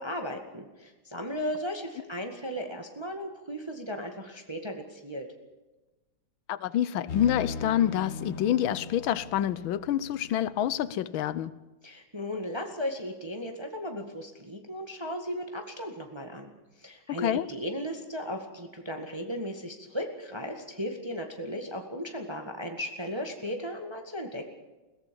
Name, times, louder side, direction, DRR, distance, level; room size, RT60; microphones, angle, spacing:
voice 1, 0.0-5.3 11.8-16.5 16.8-24.5, equal, 15° right, 1.8 m, -36 dB
voice 2, 6.5-11.5 17.2-17.5, left 11 dB, 85° left, 1.6 m, -27 dB
sound 1, 7.1-10.8, left 4 dB, 40° left, 1.2 m, -39 dB
22.5 x 16.5 x 7.1 m
omnidirectional pair, 2.1 m